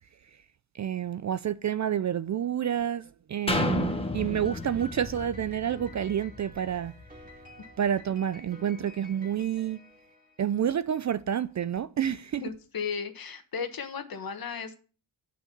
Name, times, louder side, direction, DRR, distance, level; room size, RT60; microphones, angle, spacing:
voice 1, 0.7-6.9 7.8-9.8 10.4-12.4, right 9 dB, 40° right, 0.4 m, -29 dB
sound 1, 3.5-7.3 7.8-7.9, left 2 dB, 10° left, 1.2 m, -32 dB
Piano, 4.3-10.8, left 2 dB, 20° right, 2.7 m, -51 dB
voice 2, 12.4-14.7, left 6 dB, 50° left, 1.5 m, -35 dB
9.3 x 6.5 x 5.3 m
cardioid pair, 120°, 46 cm